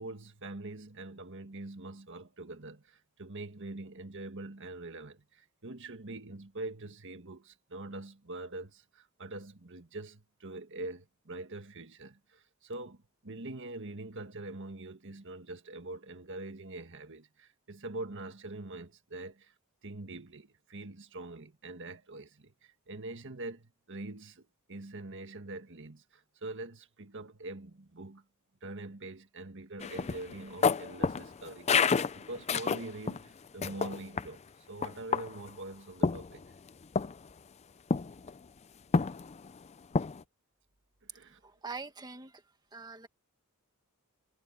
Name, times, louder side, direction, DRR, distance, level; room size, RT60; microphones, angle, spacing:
voice 1, 0.0-19.5 19.8-28.2 28.6-36.4 41.0-41.5, right 2 dB, 55° right, 1.7 m, -44 dB
sound 1, 29.8-33.2 33.6-34.3 34.8-35.5 36.0-36.7 37.0-37.3 37.9-38.3 38.9-39.5 39.9-40.2, left 5 dB, 30° left, 0.4 m, -29 dB
voice 2, 41.4-42.4 42.7-43.1, right 4 dB, 20° right, 1.9 m, -43 dB
head